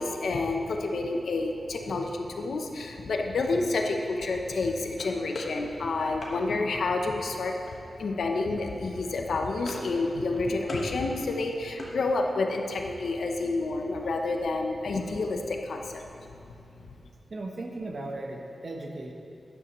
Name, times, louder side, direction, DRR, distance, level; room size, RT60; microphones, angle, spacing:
voice 1, 0.0-7.5 8.0-16.0 16.4-16.5, left 3 dB, 80° left, 3 dB, 0.7 m, -29 dB
sound 1, 5.0-6.4 7.7-8.1 8.4-8.6 8.9-10.0 10.3-10.9 11.3-12.5, left 2 dB, 50° left, 1.4 m, -42 dB
voice 2, 17.3-19.1, right 2 dB, 40° right, 1 dB, 1.0 m, -37 dB
12.0 x 9.8 x 3.1 m, 2.7 s
wide cardioid pair, 145°, 0 cm